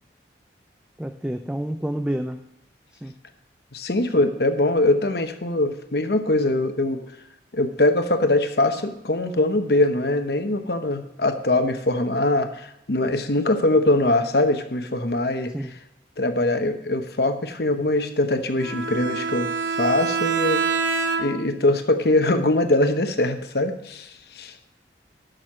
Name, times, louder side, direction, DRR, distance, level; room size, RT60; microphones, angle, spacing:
voice 1, 1.0-2.5 2.9-3.2 15.5-15.7, right 1 dB, 5° right, 7 dB, 0.4 m, -29 dB
voice 2, 3.7-7.0 7.5-15.5 16.2-20.9 21.2-24.6, left 2 dB, 60° left, 7 dB, 1.0 m, -22 dB
Bowed string instrument, 18.6-21.6, right 5 dB, 85° right, 1.0 m, -26 dB
12.0 x 6.5 x 6.2 m, 0.82 s
head